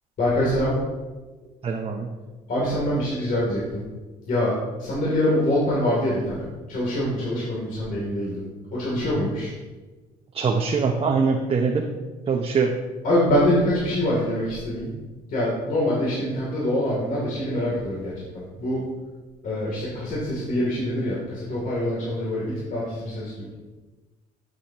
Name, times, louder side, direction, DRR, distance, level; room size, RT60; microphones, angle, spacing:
voice 1, 0.2-0.8 2.5-3.8 4.3-4.5 4.8-8.5 8.7-9.5 13.0-14.9 15.3-18.8 19.4-23.3, left 1 dB, 55° left, -6 dB, 3.0 m, -24 dB
voice 2, 1.6-2.1 10.3-11.9 12.3-12.7, right 5 dB, 35° right, 2 dB, 0.8 m, -23 dB
11.5 x 7.8 x 3.0 m, 1.3 s
cardioid pair, 110°, 17 cm